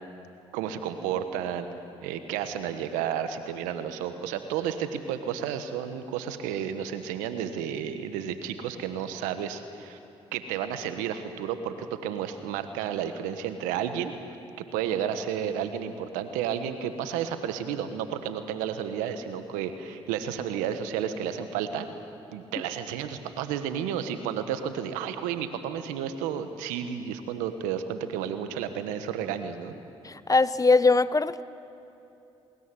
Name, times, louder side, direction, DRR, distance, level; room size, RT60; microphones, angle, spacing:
voice 1, 0.5-1.7 2.0-10.0 10.3-14.1 14.7-21.9 22.3-29.7, right 9 dB, 85° right, 9 dB, 1.4 m, -32 dB
voice 2, 30.0-31.4, left 3 dB, 25° left, 15 dB, 1.0 m, -21 dB
21.0 x 20.5 x 9.9 m, 2.9 s
hypercardioid pair, 50°, 13 cm